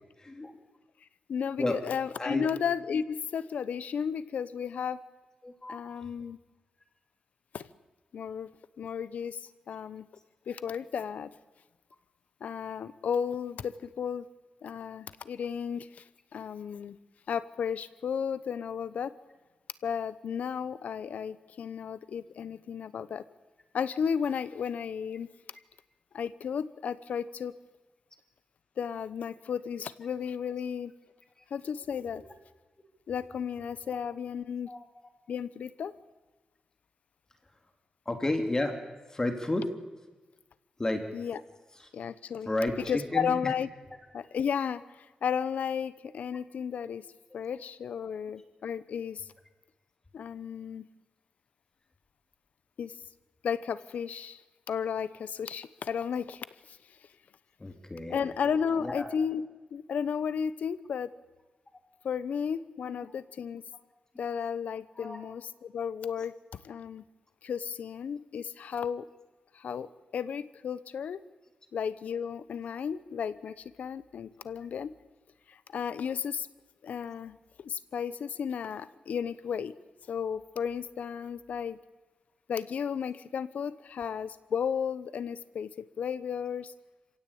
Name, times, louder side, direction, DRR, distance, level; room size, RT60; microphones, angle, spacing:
voice 1, 0.2-0.5 1.6-1.8 2.2-2.5 5.4-5.8 31.9-32.2 34.7-34.9 38.1-38.8 39.1-39.7 40.8-41.0 41.8-41.9 42.4-43.4 57.6-58.2 58.8-59.1 62.9-63.0 64.9-65.2, left 2 dB, 25° left, 5 dB, 2.9 m, -31 dB
voice 2, 1.3-5.0 5.7-6.4 7.5-7.7 8.1-8.5 8.8-9.4 9.7-10.1 10.5-11.3 12.4-14.3 14.6-16.0 16.3-17.0 17.3-19.1 19.8-23.2 23.7-25.3 26.1-27.6 28.8-30.9 31.5-32.2 33.1-34.7 35.3-35.9 41.1-41.4 41.9-42.5 42.9-43.7 44.1-47.1 47.3-49.3 50.1-50.9 52.8-52.9 53.4-54.4 54.7-56.8 58.1-61.1 62.0-63.6 64.2-66.3 66.6-67.0 67.4-69.1 69.5-71.2 71.7-74.9 75.5-76.5 76.8-79.8 80.1-81.8 82.5-86.7, left 7 dB, 85° left, 16 dB, 0.9 m, -33 dB
27.0 x 16.5 x 8.7 m, 1.2 s
cardioid pair, 80°, 3 cm